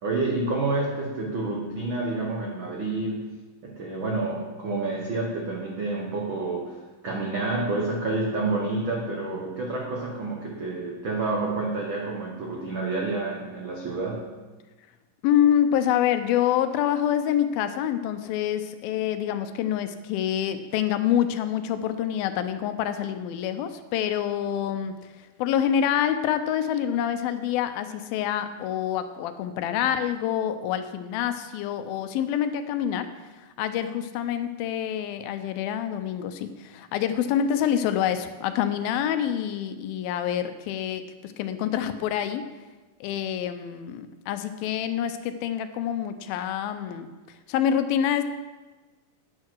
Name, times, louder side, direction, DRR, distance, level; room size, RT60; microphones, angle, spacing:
voice 1, 0.0-3.3 3.6-6.8 7.0-14.3, right 3 dB, 80° right, -1 dB, 1.1 m, -29 dB
voice 2, 15.2-24.9 25.4-42.4 43.0-47.1 47.5-48.2, left 10 dB, 80° left, 9 dB, 2.5 m, -26 dB
11.5 x 9.5 x 4.6 m, 1.2 s
omnidirectional pair, 4.2 m